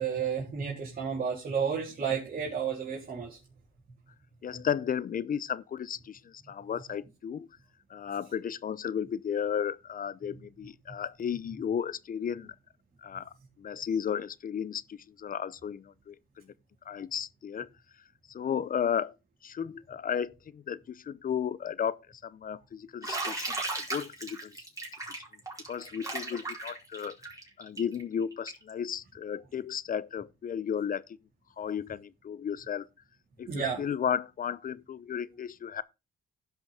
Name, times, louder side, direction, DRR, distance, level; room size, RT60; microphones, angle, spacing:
voice 1, 0.0-3.4 33.5-33.8, right 7 dB, 45° right, 3.6 m, -32 dB
voice 2, 4.4-7.5 7.9-12.5 13.0-16.2 16.9-17.7 18.3-19.1 19.4-24.5 25.1-25.2 25.7-27.2 27.6-31.0 31.6-32.9 33.4-35.8, left 8 dB, 45° left, 0.7 m, -34 dB
Bathtub (filling or washing), 23.0-28.7, right 2 dB, 15° right, 4.4 m, -36 dB
16.0 x 5.7 x 3.6 m
cardioid pair, 90°, 20 cm